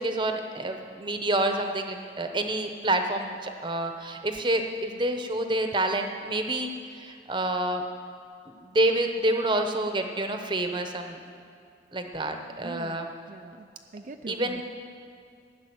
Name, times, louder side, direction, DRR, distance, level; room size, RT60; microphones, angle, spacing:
voice 1, 0.0-7.8 8.5-11.2 11.9-13.1 14.3-14.6, right 1 dB, 25° right, 5 dB, 1.0 m, -28 dB
voice 2, 12.6-13.7 13.9-14.6, right 2 dB, 45° right, 6 dB, 0.5 m, -43 dB
14.5 x 7.0 x 9.5 m, 2.5 s
head